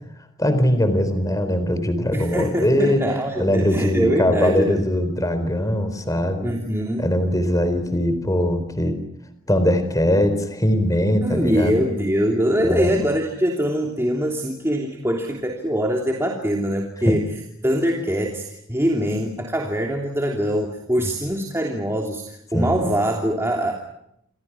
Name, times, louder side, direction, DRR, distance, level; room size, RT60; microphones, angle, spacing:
voice 1, 0.4-3.0 3.4-6.5 7.0-8.9 9.5-11.8 12.6-12.9 17.1-17.2 22.5-22.8, equal, 15° left, 10 dB, 4.1 m, -21 dB
voice 2, 2.1-4.9 6.4-7.1 11.2-23.8, equal, 10° right, 0 dB, 3.1 m, -23 dB
29.0 x 27.0 x 6.1 m, 0.76 s
head